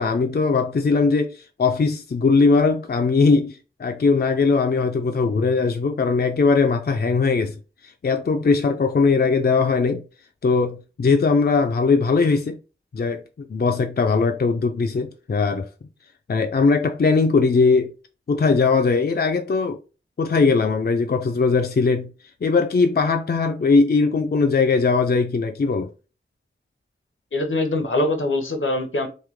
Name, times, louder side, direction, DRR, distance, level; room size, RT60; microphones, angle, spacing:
voice 1, 0.0-7.6 7.8-10.0 10.4-12.6 12.9-15.7 16.3-17.9 18.3-19.8 20.2-22.1 22.4-25.9, left 4 dB, 50° left, 0.4 m, -20 dB
voice 2, 27.3-29.1, left 2 dB, 80° left, 0.7 m, -23 dB
3.1 x 2.2 x 3.4 m
wide cardioid pair, 45°, 20 cm